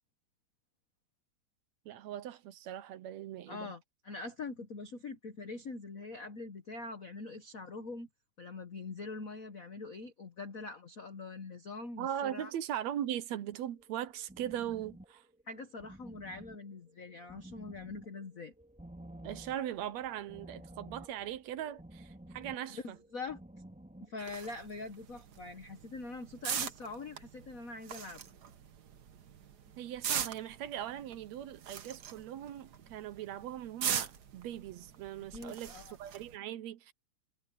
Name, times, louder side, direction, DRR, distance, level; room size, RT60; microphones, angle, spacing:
voice 1, 1.9-3.7 12.0-15.2 19.2-23.0 29.8-35.7 36.0-36.9, right 11 dB, 70° right, 2.0 m, -40 dB
voice 2, 3.5-8.1 8.4-12.5 15.5-18.5 22.4-23.4 24.0-28.2 35.3-36.0, left 3 dB, 90° left, 0.7 m, -44 dB
sound 1, 13.5-24.3, right 1 dB, 5° right, 1.5 m, -52 dB
sound 2, 24.2-36.4, right 8 dB, 55° right, 1.1 m, -41 dB
omnidirectional pair, 3.4 m